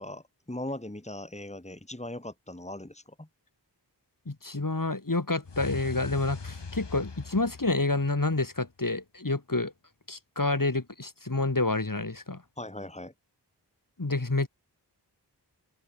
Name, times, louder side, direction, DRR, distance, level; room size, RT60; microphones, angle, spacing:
voice 1, 0.0-3.3 12.6-13.1, left 1 dB, 15° left, 3.1 m, -39 dB
voice 2, 4.3-9.7 10.1-12.4 14.0-14.5, left 2 dB, 50° left, 4.2 m, -28 dB
sound 1, 5.4-8.6, left 4 dB, 85° left, 2.4 m, -41 dB
wide cardioid pair, 50°, 41 cm